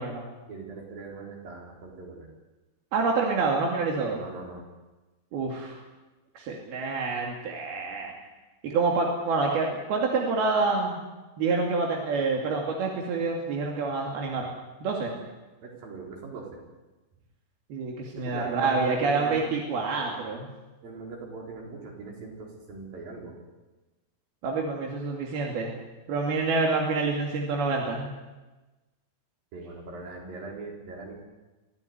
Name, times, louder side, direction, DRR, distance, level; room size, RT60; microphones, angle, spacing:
voice 1, 0.5-2.3 4.2-4.7 15.6-16.6 18.2-19.4 20.8-23.4 29.5-31.2, right 4 dB, 70° right, 0 dB, 6.1 m, -40 dB
voice 2, 2.9-4.2 5.3-5.8 6.4-8.1 8.6-11.0 11.4-14.5 14.8-15.1 17.7-20.5 24.4-25.7 26.1-28.1, right 3 dB, 90° right, 0 dB, 4.5 m, -27 dB
24.0 x 16.5 x 9.6 m, 1.1 s
omnidirectional pair, 4.3 m